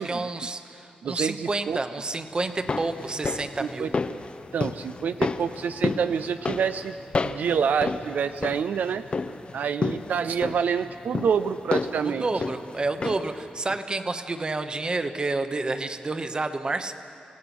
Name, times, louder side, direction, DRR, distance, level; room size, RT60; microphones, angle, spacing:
voice 1, 0.0-3.9 12.0-16.9, right 3 dB, 30° right, 9 dB, 1.0 m, -29 dB
voice 2, 1.0-1.8 3.6-3.9 4.5-7.0 7.2-9.0 9.5-12.3, right 7 dB, 80° right, 10 dB, 0.5 m, -27 dB
sound 1, 2.4-13.4 13.7-13.8, left 4 dB, 40° left, 0.7 m, -32 dB
25.5 x 17.0 x 6.1 m, 2.6 s
wide cardioid pair, 105°, 3 cm